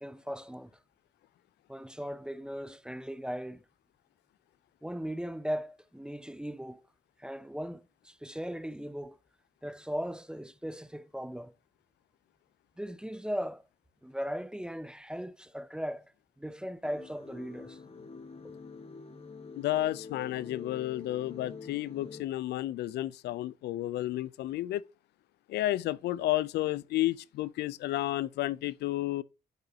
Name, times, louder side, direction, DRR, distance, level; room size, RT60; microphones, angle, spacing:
voice 1, 0.0-0.7 1.7-3.6 4.8-6.8 7.2-9.2 9.6-11.5 12.8-13.7 14.0-16.1 16.4-17.8 18.4-18.5, equal, 5° right, 0.4 m, -38 dB
sound 1, 16.8-22.2, left 4 dB, 35° left, 1.3 m, -47 dB
voice 2, 19.6-24.8 25.5-29.2, left 15 dB, 90° left, 0.4 m, -31 dB
9.0 x 5.4 x 2.7 m
cardioid pair, 80°, 17 cm